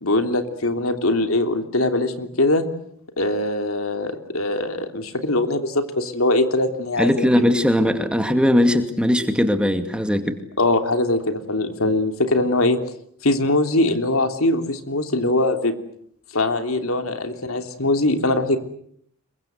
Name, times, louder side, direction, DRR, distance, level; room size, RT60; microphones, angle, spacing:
voice 1, 0.0-2.6 3.2-7.2 10.6-12.8 13.2-15.7 16.3-18.6, left 2 dB, 75° left, 7 dB, 3.2 m, -22 dB
voice 2, 7.0-10.4, left 1 dB, 5° right, 7 dB, 2.3 m, -19 dB
27.5 x 23.5 x 8.1 m, 0.68 s
head